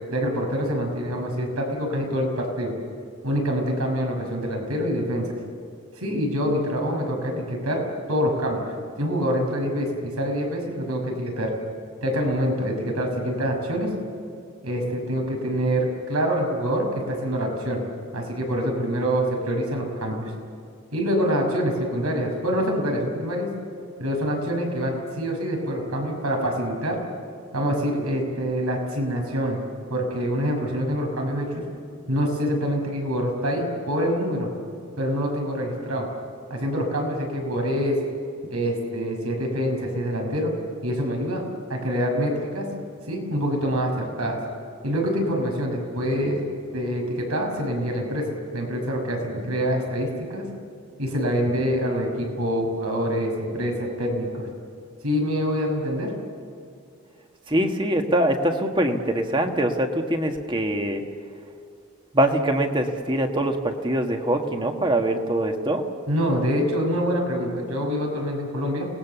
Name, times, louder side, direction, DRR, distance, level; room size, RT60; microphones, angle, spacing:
voice 1, 0.1-2.7 3.2-5.3 6.0-7.8 8.1-11.5 12.0-13.9 14.6-17.8 18.1-20.3 20.9-23.5 24.0-27.0 27.5-29.6 29.9-31.6 32.1-34.5 35.0-36.1 36.5-38.0 38.5-40.5 40.8-42.7 43.1-44.4 44.8-46.5 46.7-48.3 48.5-50.4 51.0-54.5 55.0-56.1 66.1-68.9, equal, 85° right, 2 dB, 6.0 m, -25 dB
voice 2, 57.5-61.0 62.1-65.8, right 1 dB, 20° right, 4 dB, 1.6 m, -23 dB
30.0 x 19.5 x 7.1 m, 2.4 s
head